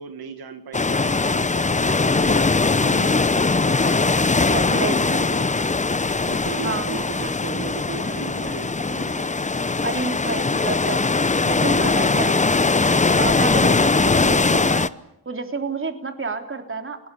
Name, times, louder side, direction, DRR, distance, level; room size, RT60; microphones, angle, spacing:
voice 1, 0.0-5.5 6.3-9.4 11.6-12.0, right 8 dB, 80° right, 8 dB, 1.8 m, -37 dB
sound 1, 0.7-14.9, left 3 dB, 20° left, 0.8 m, -20 dB
voice 2, 4.5-5.1 6.6-7.0 9.8-12.4 13.2-14.9 15.3-17.0, right 3 dB, 35° right, 6 dB, 3.6 m, -29 dB
29.5 x 19.5 x 7.0 m, 0.81 s
cardioid pair, 75°, 36 cm